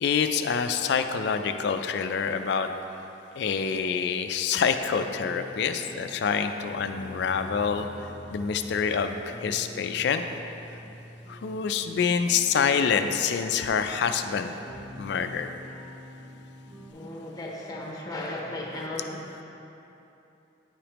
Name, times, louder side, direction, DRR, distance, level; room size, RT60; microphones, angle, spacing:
voice 1, 0.0-2.7 3.4-7.9 8.3-10.2 11.3-14.5 15.0-15.5, left 6 dB, 60° left, 8 dB, 0.3 m, -26 dB
sound 1, 4.9-16.9, left 1 dB, 30° right, 1.1 m, -46 dB
voice 2, 16.9-19.4, left 1 dB, 20° left, -2 dB, 0.8 m, -36 dB
9.5 x 5.0 x 3.0 m, 2.9 s
head